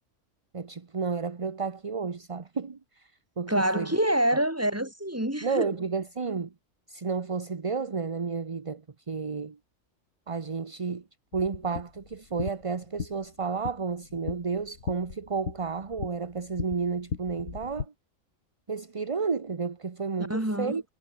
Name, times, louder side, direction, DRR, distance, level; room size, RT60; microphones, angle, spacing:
voice 1, 0.5-3.9 5.4-6.5 6.9-9.6 10.3-11.0 11.3-17.9 18.7-20.8, right 5 dB, 30° right, 0.9 m, -32 dB
voice 2, 3.5-5.7 20.2-20.8, right 1 dB, 10° right, 3.8 m, -26 dB
sound 1, 11.3-17.9, left 6 dB, 85° left, 2.0 m, -38 dB
omnidirectional pair, 1.4 m